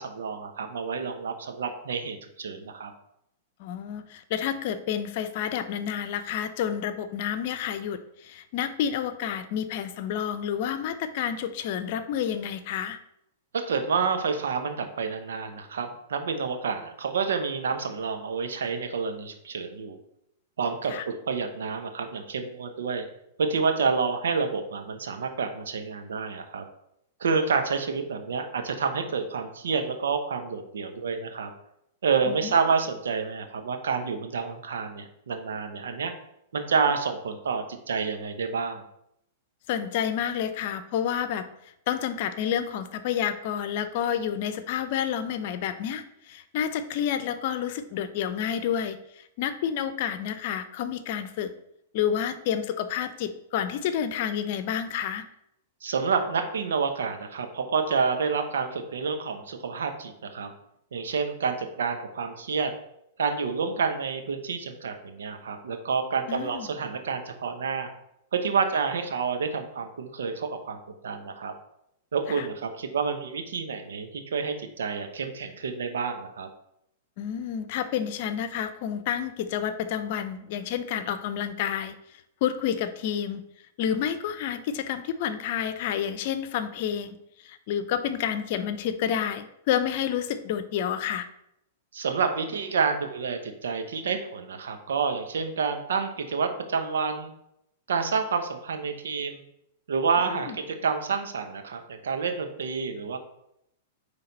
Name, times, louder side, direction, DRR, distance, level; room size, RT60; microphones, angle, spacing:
voice 1, 0.0-2.9 13.7-20.0 20.6-23.1 23.4-26.6 27.2-31.5 32.0-36.1 36.5-38.8 55.8-60.5 60.9-62.7 63.2-67.9 68.3-71.5 72.1-76.5 91.9-97.3 97.9-99.4 99.9-103.2, right 5 dB, 75° right, 6 dB, 1.0 m, -29 dB
voice 2, 3.6-13.0 20.9-21.1 32.3-32.5 39.7-41.5 41.9-51.5 51.9-55.2 66.3-66.7 72.3-72.5 77.2-81.9 82.4-83.4 83.8-87.2 87.4-91.3 100.3-100.6, left 9 dB, 55° left, 11 dB, 0.7 m, -29 dB
9.4 x 3.5 x 4.0 m, 0.78 s
hypercardioid pair, 110°, 0 cm